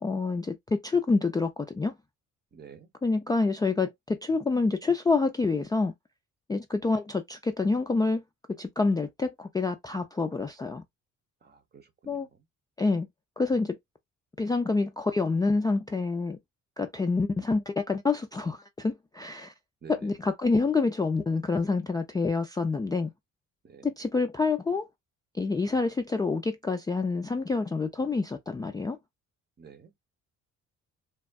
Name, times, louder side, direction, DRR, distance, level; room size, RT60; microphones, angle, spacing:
voice 1, 0.0-1.9 3.0-5.9 6.5-8.2 8.6-10.8 12.1-12.3 12.8-13.1 13.4-13.8 14.4-16.4 16.8-19.5 19.9-23.1 23.8-24.9 25.3-29.0, left 3 dB, 15° left, 0.3 m, -27 dB
voice 2, 2.5-2.9 11.4-12.3 19.8-20.1 23.6-23.9 29.6-29.9, right 6 dB, 35° right, 0.8 m, -50 dB
3.5 x 2.1 x 2.2 m
cardioid pair, 90°, 30 cm